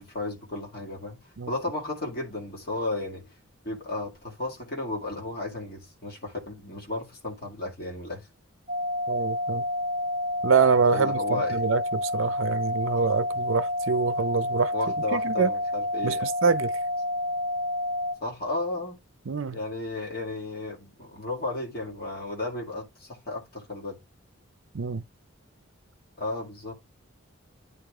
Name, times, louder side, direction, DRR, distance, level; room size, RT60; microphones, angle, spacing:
voice 1, 0.0-1.2 1.5-3.3 3.6-8.3 10.9-11.6 14.7-16.3 18.2-19.0 19.5-24.0 26.2-26.7, left 2 dB, 45° left, 2.1 m, -33 dB
sound 1, 8.7-18.1, left 1 dB, 35° right, 1.1 m, -29 dB
voice 2, 9.1-9.6 10.4-14.7 15.1-15.5 16.0-16.2 16.4-16.7 19.3-19.6 24.7-25.0, right 5 dB, 70° right, 0.6 m, -25 dB
9.4 x 3.3 x 3.6 m
head